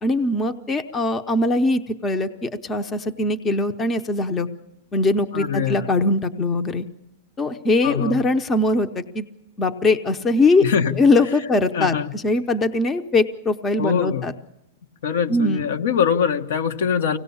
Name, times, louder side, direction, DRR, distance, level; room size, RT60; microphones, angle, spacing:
voice 1, 0.0-4.5 4.9-6.9 7.4-9.2 9.6-10.7 10.9-14.3 15.3-15.6, left 2 dB, 15° left, 9 dB, 0.7 m, -21 dB
voice 2, 5.3-5.9 7.8-8.3 10.6-11.0 11.7-12.2 13.8-14.3 15.0-17.2, left 7 dB, 70° left, 6 dB, 1.4 m, -23 dB
25.0 x 18.0 x 7.1 m, 0.87 s
supercardioid pair, 165°, 0 cm